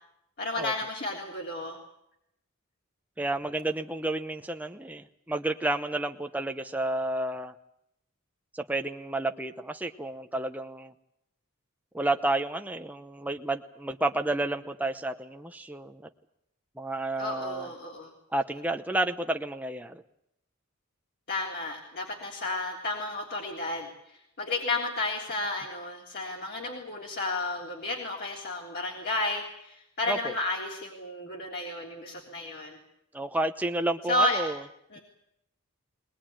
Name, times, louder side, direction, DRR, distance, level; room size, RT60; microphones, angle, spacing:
voice 1, 0.4-1.8 17.2-18.1 21.3-32.8 34.1-34.5 34.9-35.0, left 2 dB, 45° left, -2 dB, 3.5 m, -32 dB
voice 2, 3.2-7.5 8.5-10.9 11.9-16.0 16.8-17.7 18.3-20.0 30.1-30.3 33.1-34.6, right 2 dB, 5° right, 5 dB, 0.8 m, -31 dB
22.0 x 20.0 x 8.9 m, 0.81 s
head